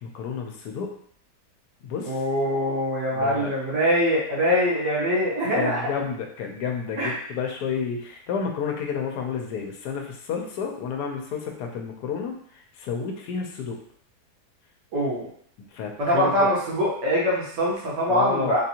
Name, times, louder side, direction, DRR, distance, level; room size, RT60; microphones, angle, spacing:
voice 1, 0.0-0.9 1.8-2.1 3.1-3.5 5.5-12.3 12.8-13.8 15.7-16.5 18.1-18.6, left 6 dB, 75° left, 2 dB, 1.1 m, -30 dB
voice 2, 2.0-5.8 7.0-7.1 14.9-15.3 16.0-18.6, equal, 80° right, -6 dB, 1.6 m, -23 dB
3.6 x 2.6 x 2.8 m, 0.63 s
omnidirectional pair, 1.8 m